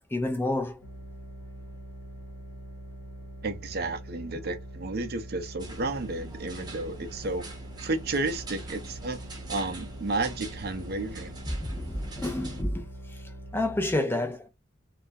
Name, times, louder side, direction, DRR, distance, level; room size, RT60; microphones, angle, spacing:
voice 1, 0.1-0.8 11.6-12.8 13.5-14.5, left 1 dB, 10° left, 0.4 m, -29 dB
sound 1, 0.8-14.0, right 1 dB, 85° left, 0.9 m, -43 dB
voice 2, 3.4-7.5 7.8-9.2 9.5-11.3, right 2 dB, 55° right, 0.5 m, -32 dB
sound 2, 5.6-12.6, right 2 dB, 20° right, 0.7 m, -44 dB
2.3 x 2.1 x 2.6 m
head